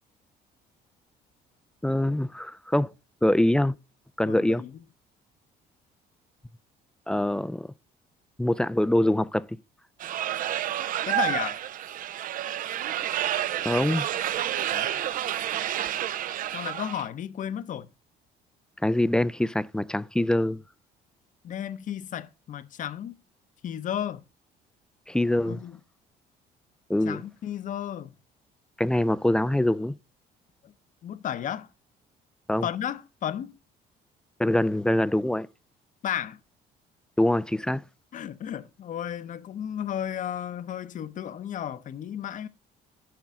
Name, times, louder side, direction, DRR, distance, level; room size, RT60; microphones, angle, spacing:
voice 1, 1.8-2.9 3.2-3.7 4.2-4.6 7.1-7.7 8.4-9.4 13.6-14.1 18.8-20.6 25.1-25.6 26.9-27.2 28.8-29.9 32.5-32.7 34.4-35.5 37.2-37.8, left 1 dB, 5° left, 0.3 m, -24 dB
voice 2, 4.2-4.8 11.1-11.6 14.7-14.9 16.5-17.9 21.4-23.2 23.6-24.2 25.5-25.8 27.0-28.1 30.6-30.7 31.0-31.7 32.6-33.6 36.0-36.4 38.1-42.5, left 10 dB, 50° left, 0.7 m, -33 dB
sound 1, 10.0-17.1, right 12 dB, 55° right, 0.5 m, -29 dB
10.5 x 5.9 x 3.6 m
cardioid pair, 110°, 17 cm